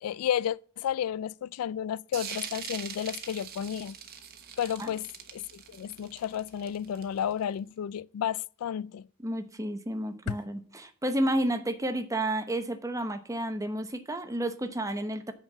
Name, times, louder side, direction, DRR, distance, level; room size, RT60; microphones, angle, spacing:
voice 1, 0.0-4.0 4.6-5.1 5.3-9.0 10.3-10.4, left 9 dB, 80° left, 0.3 m, -32 dB
sound 1, 2.1-7.4, right 7 dB, 45° right, 1.2 m, -42 dB
voice 2, 9.2-15.3, right 1 dB, 15° right, 0.8 m, -31 dB
8.8 x 4.5 x 6.8 m
head